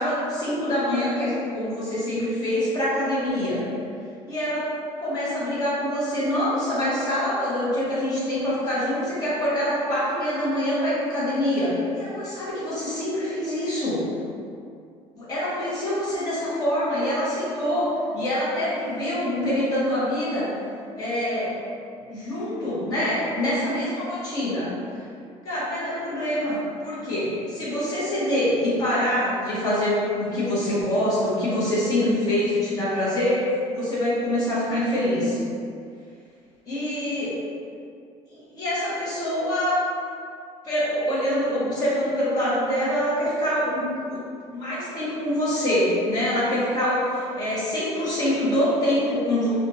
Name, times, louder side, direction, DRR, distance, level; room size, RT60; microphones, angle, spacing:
voice 1, 0.0-3.6 4.3-4.7 5.0-14.1 15.1-20.5 20.9-21.6 22.1-24.7 25.4-33.4 33.7-35.4 36.7-37.4 38.3-39.8 40.6-44.2 44.5-49.5, left 1 dB, 30° left, -10 dB, 1.2 m, -25 dB
3.5 x 2.5 x 2.8 m, 2.4 s
cardioid pair, 165°, 12 cm